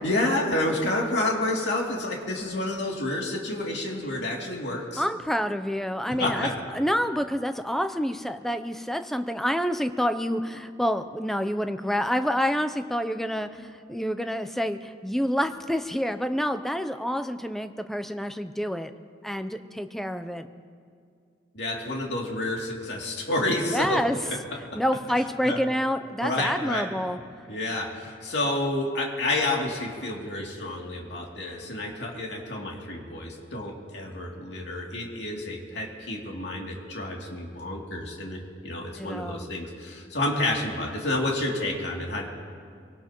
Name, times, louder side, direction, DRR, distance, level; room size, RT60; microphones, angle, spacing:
voice 1, 0.0-5.0 6.2-6.6 21.5-24.0 25.4-25.6 26.2-26.9 27.5-42.3, left 1 dB, 65° left, -2 dB, 2.7 m, -29 dB
voice 2, 5.0-18.9 19.2-20.5 23.7-24.2 24.7-27.2 39.0-39.5, equal, ahead, 8 dB, 0.5 m, -28 dB
25.5 x 18.5 x 3.0 m, 2.2 s
head